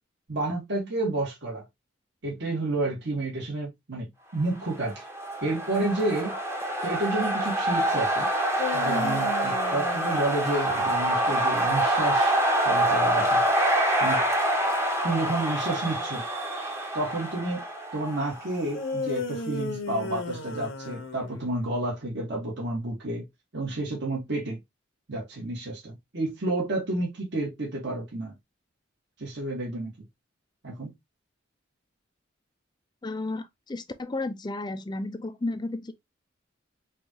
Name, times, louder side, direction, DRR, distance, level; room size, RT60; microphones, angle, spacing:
voice 1, 0.3-1.6 2.2-5.0 5.4-6.3 6.8-8.3 8.7-12.3 12.6-13.4 14.0-14.2 15.0-16.2 16.9-17.6 17.9-23.2 23.5-24.6 25.1-28.3 29.2-29.9 30.6-30.9, right 2 dB, 60° right, 1.6 m, -30 dB
sound 1, 4.8-18.6, right 1 dB, 15° right, 0.8 m, -26 dB
sound 2, 8.3-11.6 18.7-21.7, left 3 dB, 80° left, 1.0 m, -35 dB
voice 2, 33.0-35.9, left 2 dB, 20° left, 0.4 m, -33 dB
5.3 x 2.4 x 2.9 m
head